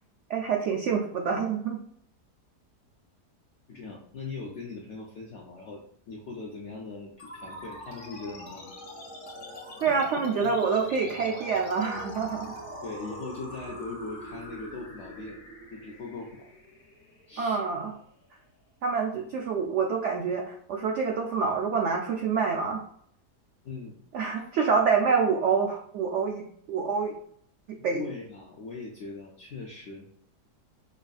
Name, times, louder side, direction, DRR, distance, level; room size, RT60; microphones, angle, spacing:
voice 1, 0.3-1.8 9.8-12.5 17.4-17.9 18.8-22.8 24.1-27.1 27.7-28.0, right 5 dB, 90° right, 1 dB, 0.6 m, -27 dB
voice 2, 3.7-5.8 6.1-8.7 9.9-10.0 10.4-10.5 12.8-15.4 15.7-16.5 17.3-17.6 23.6-24.0 27.9-30.1, left 3 dB, 75° left, -1 dB, 0.6 m, -40 dB
sound 1, 7.2-18.1, left 1 dB, 50° left, 1.3 m, -43 dB
5.5 x 2.5 x 2.3 m, 0.64 s
omnidirectional pair, 1.8 m